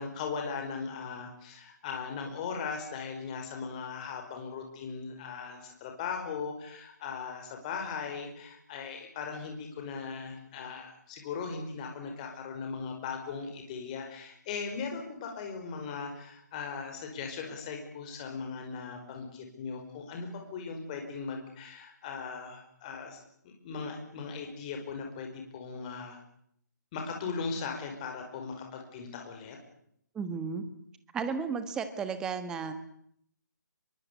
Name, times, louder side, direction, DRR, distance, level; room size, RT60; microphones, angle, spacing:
voice 1, 0.0-23.2 23.4-26.2 26.9-29.6, left 5 dB, 20° left, 3 dB, 5.1 m, -38 dB
voice 2, 30.1-30.6 31.1-32.7, right 5 dB, 5° right, 10 dB, 1.4 m, -33 dB
25.0 x 23.0 x 8.3 m, 0.69 s
hypercardioid pair, 170°, 10 cm